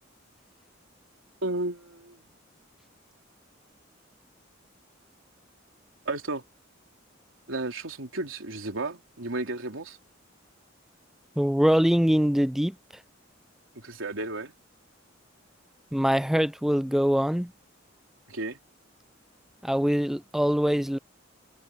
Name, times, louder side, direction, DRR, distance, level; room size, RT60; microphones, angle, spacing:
voice 1, 1.4-2.3 6.0-6.4 7.5-10.0 13.7-14.5 18.3-18.6, right 2 dB, 90° right, 3.1 m, -33 dB
voice 2, 11.4-12.7 15.9-17.5 19.6-21.0, equal, ahead, 0.4 m, -23 dB
head